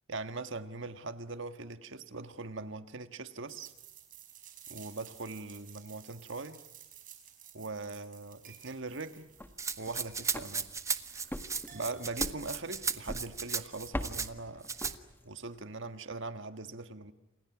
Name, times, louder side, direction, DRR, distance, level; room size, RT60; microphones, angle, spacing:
voice 1, 0.1-3.7 4.7-6.6 7.5-9.3 9.8-10.7 11.7-14.7 15.2-17.1, right 3 dB, 65° right, 1.6 m, -41 dB
sound 1, 3.5-12.2, right 9 dB, 40° right, 5.3 m, -54 dB
sound 2, 9.2-15.5, left 1 dB, 10° left, 1.6 m, -43 dB
Rattle (instrument), 9.6-14.3 14.6-14.9, right 5 dB, 15° right, 0.9 m, -35 dB
29.5 x 28.0 x 6.1 m
head